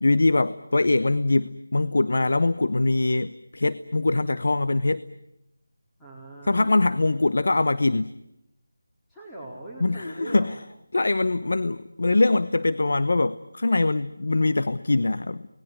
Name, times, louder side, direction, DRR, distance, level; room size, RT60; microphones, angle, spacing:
voice 1, 0.0-5.0 6.5-8.1 9.8-10.5 10.9-15.5, left 2 dB, 70° left, 13 dB, 0.9 m, -23 dB
voice 2, 6.0-6.7 9.1-10.6, right 1 dB, 5° left, -7 dB, 4.1 m, -41 dB
28.0 x 19.5 x 9.2 m, 0.87 s
figure-of-eight pair, 165°, 0 cm